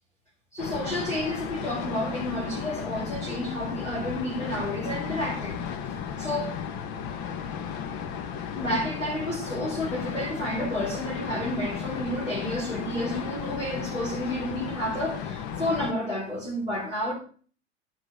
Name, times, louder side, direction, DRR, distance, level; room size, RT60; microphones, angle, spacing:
voice 1, 0.5-5.6 6.2-6.5 8.6-17.1, left 1 dB, 90° left, 3.9 m, -30 dB
sound 1, 0.6-15.9, left 7 dB, 45° left, 1.4 m, -34 dB
11.0 x 5.8 x 7.6 m
figure-of-eight pair, 85°, 37 cm